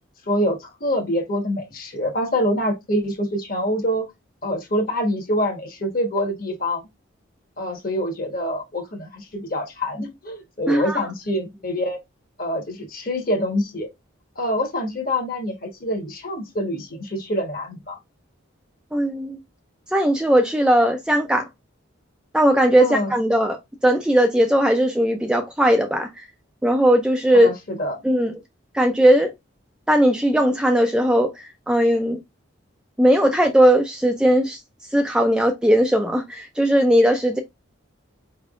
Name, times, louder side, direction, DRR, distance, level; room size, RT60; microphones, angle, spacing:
voice 1, 0.3-4.1 4.4-6.8 7.6-12.0 12.4-13.9 14.4-18.0 22.8-23.1 27.3-28.0, equal, 45° left, 1.2 m, -25 dB
voice 2, 10.7-11.0 18.9-19.4 19.9-21.5 22.3-26.2 26.6-27.5 28.0-28.3 28.7-29.3 29.9-32.2 33.0-34.6 34.9-37.4, equal, 5° right, 0.3 m, -18 dB
4.5 x 3.4 x 2.4 m
head